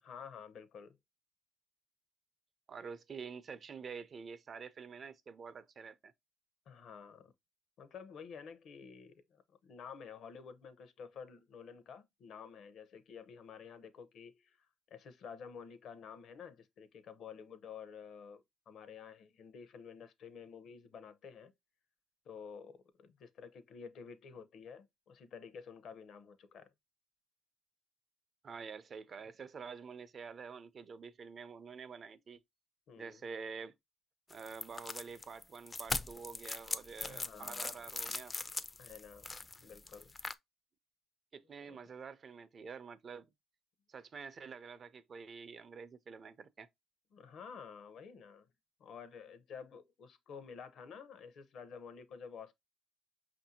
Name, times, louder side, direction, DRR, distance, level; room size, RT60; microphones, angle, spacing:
voice 1, 0.0-1.0 6.7-7.3 7.8-14.6 14.9-21.5 22.3-26.7 32.9-33.2 37.0-37.8 38.8-39.3 39.6-40.1 41.6-41.8 47.1-48.5 48.8-52.5, left 6 dB, 65° left, 0.6 m, -51 dB
voice 2, 2.7-6.1 28.4-32.4 33.0-33.7 34.3-38.4 41.3-43.3 43.9-46.7, right 5 dB, 45° right, 0.4 m, -48 dB
sound 1, 34.3-40.3, left 3 dB, 25° left, 0.3 m, -41 dB
5.4 x 2.6 x 2.7 m
cardioid pair, 85°, 0 cm